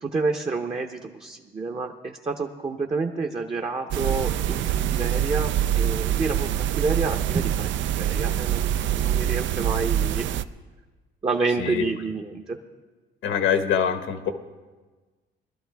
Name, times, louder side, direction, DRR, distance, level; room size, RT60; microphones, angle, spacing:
voice 1, 0.0-7.7 8.0-10.3 11.2-12.6, right 4 dB, 30° right, 2 dB, 0.8 m, -29 dB
sound 1, 3.9-10.4, right 11 dB, 70° right, 0.5 m, -25 dB
voice 2, 13.2-14.3, left 7 dB, 80° left, 8 dB, 1.1 m, -24 dB
20.0 x 12.0 x 3.5 m, 1.3 s
cardioid pair, 90°, 20 cm